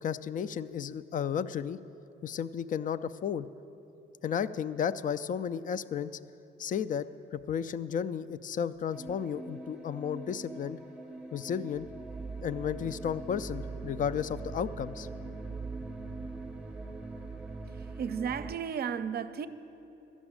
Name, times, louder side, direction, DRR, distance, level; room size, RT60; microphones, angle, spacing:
voice 1, 0.0-1.8 2.2-3.5 4.2-6.1 6.6-7.1 7.3-10.8 11.3-11.9 12.4-15.1, left 8 dB, 40° left, 0.4 m, -33 dB
sound 1, 8.9-18.5, right 3 dB, 5° right, 0.7 m, -42 dB
voice 2, 17.7-19.5, right 7 dB, 50° right, 0.5 m, -34 dB
12.5 x 6.2 x 8.8 m
cardioid pair, 90°, 20 cm